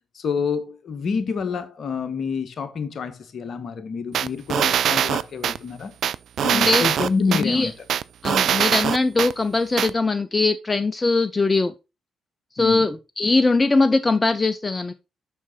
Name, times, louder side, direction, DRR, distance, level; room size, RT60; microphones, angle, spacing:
voice 1, 0.1-5.9 6.4-7.7 12.6-12.9, left 5 dB, 55° left, 1.3 m, -27 dB
sound 1, 4.1-5.6 6.0-7.4 7.9-9.3 9.8-9.9, right 9 dB, 60° right, 0.3 m, -22 dB
voice 2, 6.5-6.9 7.3-7.7 8.2-11.7 12.5-14.9, left 3 dB, 25° left, 0.7 m, -21 dB
7.2 x 6.1 x 4.1 m
hypercardioid pair, 40°, 0 cm